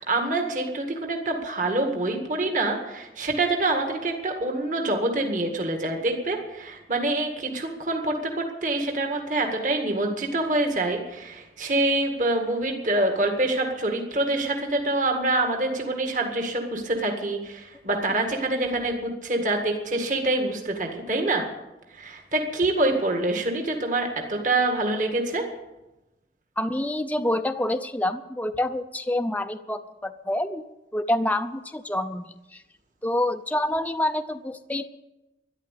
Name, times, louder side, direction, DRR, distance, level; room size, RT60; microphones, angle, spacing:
voice 1, 0.0-21.5 21.9-25.5, right 2 dB, 45° right, 3 dB, 1.9 m, -26 dB
voice 2, 26.6-30.6 30.9-32.2 32.5-32.6 33.0-34.9, left 1 dB, 10° left, 8 dB, 0.5 m, -27 dB
13.5 x 11.0 x 8.4 m, 0.99 s
head